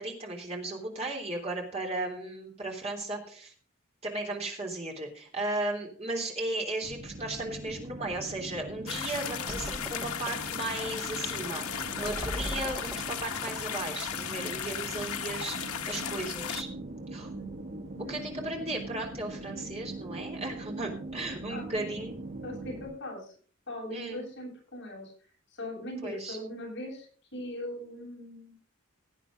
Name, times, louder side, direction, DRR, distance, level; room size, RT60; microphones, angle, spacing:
voice 1, 0.0-3.5 4.0-16.7 17.1-17.3 18.1-22.2 23.9-24.2 26.0-26.4, right 2 dB, 30° right, 0 dB, 3.3 m, -36 dB
sound 1, 6.8-22.9, right 2 dB, 50° right, 7.2 m, -42 dB
sound 2, 8.9-16.6, left 8 dB, 85° left, 1.0 m, -36 dB
sound 3, 9.5-14.5, right 1 dB, 10° right, 0.6 m, -42 dB
voice 2, 17.9-18.5 21.5-21.9 22.4-23.3 23.7-25.1 25.5-27.1 27.3-28.6, left 1 dB, 55° left, -2 dB, 8.0 m, -40 dB
17.5 x 9.0 x 3.8 m, 0.42 s
head